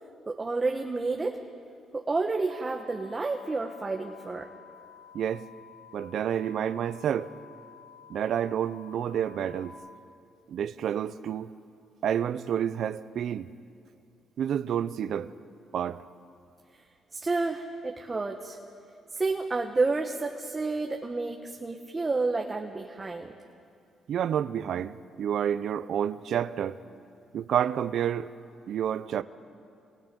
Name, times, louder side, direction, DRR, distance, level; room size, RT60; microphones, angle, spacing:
voice 1, 0.3-1.4 1.9-4.5 17.1-18.6 19.1-23.3, right 3 dB, 25° right, 1.5 m, -30 dB
sound 1, 2.5-9.7, left 6 dB, 85° right, 2.3 m, -52 dB
voice 2, 5.1-5.5 5.9-7.3 8.1-9.8 10.5-11.5 12.0-13.5 14.4-15.3 15.7-16.0 24.1-26.8 27.3-28.3 28.7-29.2, right 9 dB, 70° right, 0.8 m, -29 dB
29.5 x 26.5 x 5.4 m
cardioid pair, 90°, 0 cm